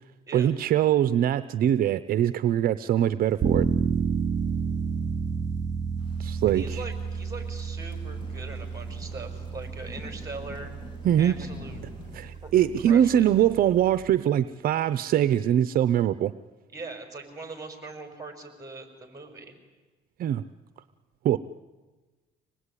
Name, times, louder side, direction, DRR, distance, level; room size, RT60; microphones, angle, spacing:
voice 1, 0.3-3.7 6.2-6.8 11.0-11.3 12.1-16.3 20.2-20.4 21.2-21.4, right 10 dB, 60° right, 14 dB, 0.7 m, -23 dB
sound 1, 3.4-14.2, right 6 dB, 40° right, 3.7 m, -31 dB
Thunder / Rain, 6.0-12.3, left 3 dB, 30° left, 6.0 m, -46 dB
voice 2, 6.5-10.7 11.2-11.8 12.4-13.3 16.7-19.5, right 3 dB, 20° right, 7 dB, 5.5 m, -41 dB
25.5 x 19.5 x 9.9 m, 1.3 s
cardioid pair, 110°, 17 cm